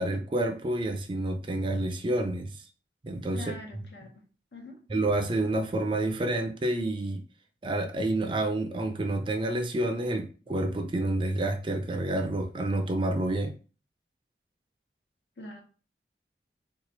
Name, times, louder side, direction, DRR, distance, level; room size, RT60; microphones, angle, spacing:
voice 1, 0.0-2.5 3.0-3.4 4.9-7.2 7.6-13.5, right 1 dB, 30° right, 6 dB, 0.4 m, -29 dB
voice 2, 3.3-4.1 4.5-4.8 15.4-15.6, left 2 dB, 75° left, 2 dB, 0.9 m, -43 dB
3.0 x 2.3 x 3.9 m, 0.37 s
head